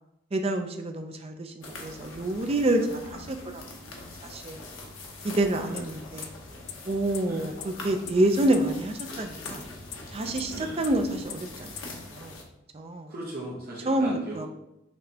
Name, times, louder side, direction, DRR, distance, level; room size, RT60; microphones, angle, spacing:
voice 1, 0.3-3.6 4.3-4.6 5.2-6.3 6.9-9.6 10.1-11.7 12.1-12.4 12.7-13.1 13.9-14.5, right 1 dB, 30° right, 5 dB, 0.4 m, -27 dB
sound 1, 1.6-12.4, left 2 dB, 80° left, 0.9 m, -43 dB
sound 2, 5.8-5.9 6.2-6.3 6.7-6.8 7.1-7.2 7.6-7.7 8.1-8.2 8.5-8.6 9.0-9.1 9.5-9.6 9.9-10.0 10.4-10.5 10.8-10.9 11.3-11.4 11.8-11.9, left 11 dB, 55° left, 0.4 m, -36 dB
voice 2, 7.2-7.6 10.5-10.9 13.1-14.5, right 1 dB, 50° right, -5 dB, 0.9 m, -39 dB
6.0 x 3.2 x 2.8 m, 0.87 s
head